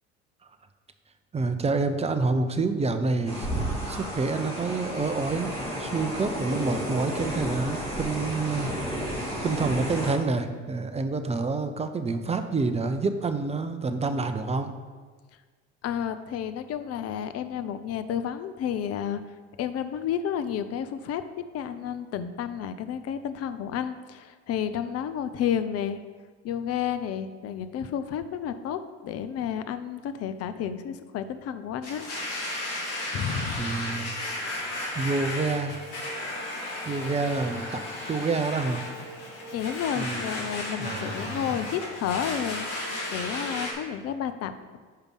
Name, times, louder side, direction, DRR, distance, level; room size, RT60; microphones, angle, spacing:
voice 1, 1.3-3.5 3.9-5.5 5.8-9.0 9.4-14.7 33.6-34.1 34.6-35.8 36.9-37.8 38.1-38.8 40.0-40.3 40.8-41.4, right 3 dB, 20° right, 8 dB, 0.6 m, -28 dB
sound 1, 3.3-10.1, equal, 15° left, 2.3 m, -32 dB
voice 2, 15.8-19.2 19.6-21.2 21.5-26.0 26.4-32.1 33.1-33.7 39.5-44.8, left 9 dB, 45° left, 11 dB, 0.6 m, -31 dB
Domestic sounds home sounds, 31.8-43.7, left 1 dB, 65° left, 2.0 m, -34 dB
5.6 x 5.1 x 6.3 m, 1.5 s
hypercardioid pair, 70°, 35 cm